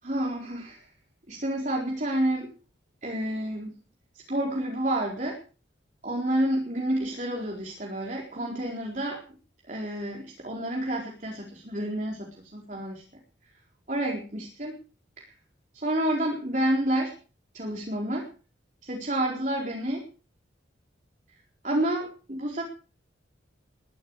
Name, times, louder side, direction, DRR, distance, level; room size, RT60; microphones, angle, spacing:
voice 1, 0.0-0.9 1.3-2.5 3.0-3.8 4.1-5.4 6.0-9.2 9.7-13.0 13.9-14.8 15.2-15.3 15.7-17.1 17.5-18.3 18.8-20.1 21.6-22.6, right 1 dB, 40° right, -1 dB, 4.4 m, -29 dB
21.5 x 13.0 x 4.9 m, 0.37 s
head